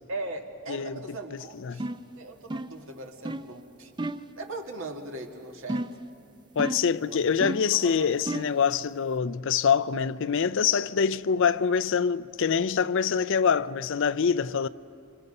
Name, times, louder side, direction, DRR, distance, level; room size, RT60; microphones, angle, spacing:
voice 1, 0.1-1.9 2.2-3.9 4.4-5.8 7.1-7.2 7.7-8.1, right 2 dB, 65° right, 2.0 m, -39 dB
voice 2, 0.7-1.0 1.3-1.8 6.6-14.7, left 6 dB, 60° left, 0.5 m, -25 dB
sound 1, 1.8-2.1 2.5-2.8 3.2-3.5 4.0-4.3 5.7-6.1 6.6-6.9 7.4-7.7 8.3-8.6, right 1 dB, 20° right, 0.5 m, -32 dB
28.0 x 26.0 x 5.4 m
head